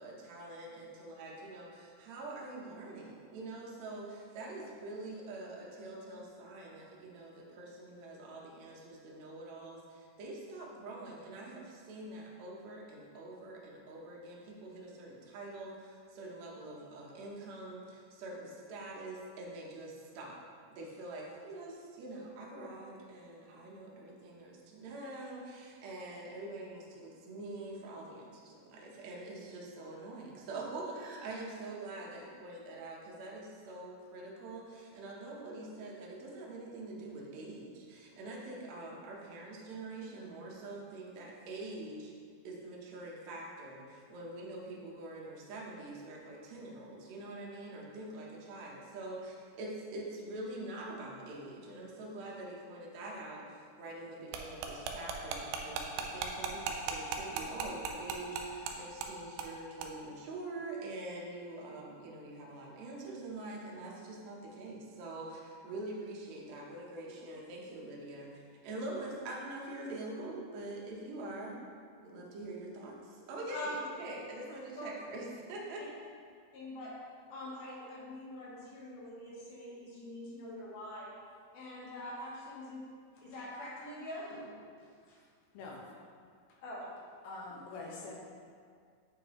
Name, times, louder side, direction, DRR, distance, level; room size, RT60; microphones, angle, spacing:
voice 1, 0.0-20.4 20.7-42.1 42.4-71.6 72.0-75.9, right 2 dB, 70° right, -3 dB, 1.7 m, -45 dB
sound 1, 54.3-58.7 59.0-59.1 59.4-59.5 59.8-59.9, right 7 dB, 90° right, 1.9 m, -36 dB
voice 2, 76.5-77.0 77.3-81.2 81.5-82.8 83.2-84.5 85.1-85.2 86.6-86.9, left 1 dB, 65° left, -5 dB, 2.6 m, -44 dB
voice 3, 87.2-88.1, left 3 dB, 90° left, -2 dB, 2.9 m, -44 dB
8.5 x 4.5 x 3.0 m, 2.1 s
omnidirectional pair, 4.4 m